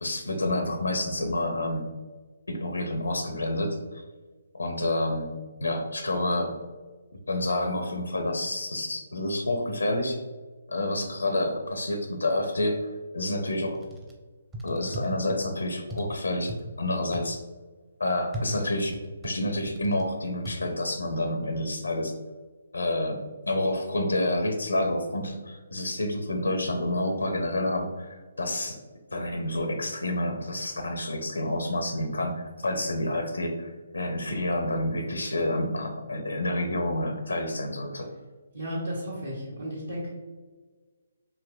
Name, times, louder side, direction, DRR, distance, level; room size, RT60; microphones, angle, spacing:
voice 1, 0.0-1.9 2.5-4.0 4.5-5.3 5.6-6.5 7.3-10.2 10.7-13.8 14.6-17.4 18.0-19.0 19.2-22.1 22.7-23.2 23.5-28.8 29.1-38.1, left 1 dB, 80° left, 4 dB, 0.5 m, -29 dB
sound 1, 13.6-14.1 14.5-15.5 15.9-16.6 17.1-17.3 18.3-20.1 20.5-20.6, equal, 15° right, 0.6 m, -37 dB
voice 2, 38.5-40.1, equal, 80° right, -9 dB, 1.2 m, -33 dB
4.7 x 3.0 x 2.3 m, 1.4 s
figure-of-eight pair, 140°, 0 cm